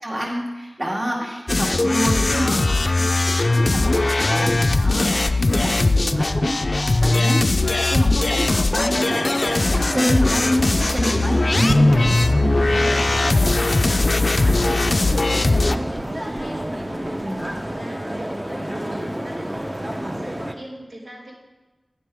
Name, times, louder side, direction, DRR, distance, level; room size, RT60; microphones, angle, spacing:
voice 1, 0.0-2.7 3.3-12.1 12.6-12.7 17.2-17.5, equal, 40° right, -3 dB, 2.2 m, -27 dB
sound 1, 1.5-15.8, left 2 dB, 55° left, 0.4 m, -19 dB
voice 2, 1.6-2.5 5.7-6.1 11.7-12.2 12.6-17.0 17.3-21.3, right 1 dB, 90° right, -4 dB, 2.5 m, -38 dB
sound 2, 9.0-20.5, right 1 dB, 20° right, 0.8 m, -30 dB
sound 3, 11.6-17.8, right 2 dB, 70° right, 0.4 m, -33 dB
11.5 x 10.5 x 3.5 m, 1.1 s
wide cardioid pair, 65°, 0 cm